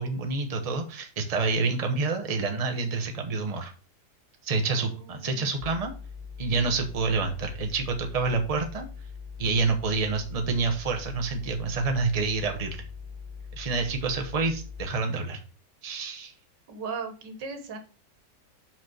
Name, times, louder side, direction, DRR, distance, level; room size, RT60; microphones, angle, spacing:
voice 1, 0.0-3.7 4.4-5.9 6.4-8.9 9.4-12.9 13.5-15.4 15.8-16.3, right 4 dB, 25° right, 4 dB, 1.1 m, -28 dB
voice 2, 4.7-5.5 16.7-17.8, right 4 dB, 80° right, 6 dB, 2.0 m, -38 dB
sound 1, 5.6-14.8, left 5 dB, 70° left, 1.7 m, -41 dB
5.8 x 5.3 x 6.0 m, 0.35 s
omnidirectional pair, 1.9 m